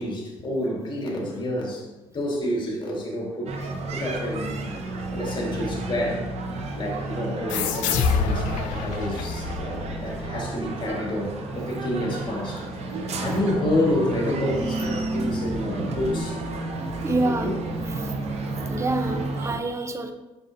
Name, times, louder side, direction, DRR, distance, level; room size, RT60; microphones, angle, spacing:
voice 1, 0.0-1.8 2.1-6.3 6.7-12.9 13.2-16.4 17.2-17.6, left 1 dB, 35° left, -1 dB, 2.0 m, -29 dB
sound 1, 3.5-19.6, right 2 dB, 55° right, 1.1 m, -31 dB
sound 2, 7.5-10.7, left 6 dB, 70° left, 0.5 m, -27 dB
voice 2, 17.0-17.5 17.9-18.2 18.6-20.1, right 2 dB, 20° right, 7 dB, 0.8 m, -27 dB
6.9 x 5.4 x 2.8 m, 1.1 s
hypercardioid pair, 55°, 13 cm